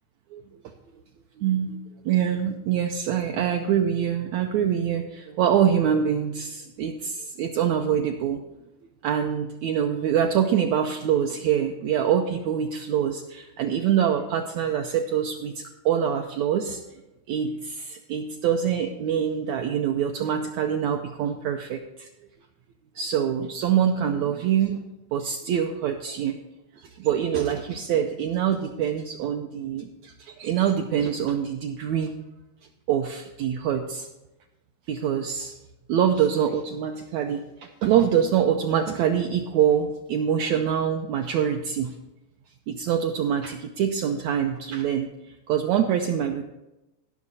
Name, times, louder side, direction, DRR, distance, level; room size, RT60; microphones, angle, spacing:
voice 1, 1.4-1.8 2.0-8.4 9.0-16.8 17.3-22.1 22.9-24.8 25.1-26.4 26.8-32.1 32.9-34.1 34.9-35.5 35.9-41.9 42.7-45.1 45.5-46.4, right 9 dB, 80° right, 4 dB, 1.6 m, -25 dB
16.5 x 6.2 x 4.1 m, 0.98 s
omnidirectional pair, 3.8 m